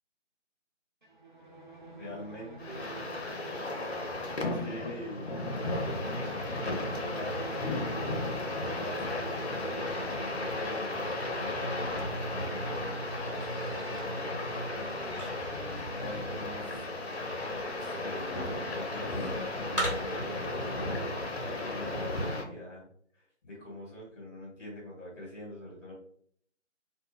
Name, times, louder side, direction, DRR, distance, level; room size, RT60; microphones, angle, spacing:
sound 1, 1.0-20.1, right 2 dB, 40° right, 0.4 m, -45 dB
voice 1, 2.0-2.9 4.5-5.4 6.5-7.5 8.7-11.0 11.3-16.8 17.7-19.3 19.6-22.9 23.1-25.9, left 1 dB, 15° left, -6 dB, 1.2 m, -45 dB
sound 2, 2.6-22.4, left 2 dB, 60° left, 0.7 m, -34 dB
sound 3, 13.6-20.4, right 1 dB, 35° left, 1.0 m, -42 dB
2.2 x 2.2 x 3.2 m, 0.63 s
figure-of-eight pair, 165°, 36 cm